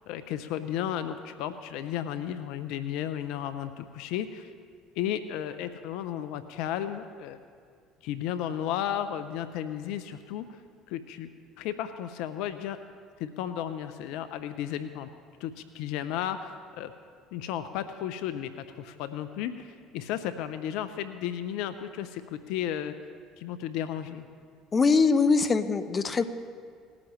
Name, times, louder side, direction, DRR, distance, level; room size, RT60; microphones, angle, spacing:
voice 1, 0.1-4.5 5.0-7.4 8.0-10.6 10.9-11.3 11.6-12.8 13.2-15.1 15.4-16.9 17.3-23.0 23.4-24.3, left 10 dB, 70° left, 11 dB, 0.6 m, -34 dB
voice 2, 24.7-26.3, left 4 dB, 35° left, 11 dB, 0.8 m, -22 dB
19.0 x 13.5 x 3.2 m, 2.1 s
hypercardioid pair, 65°, 0 cm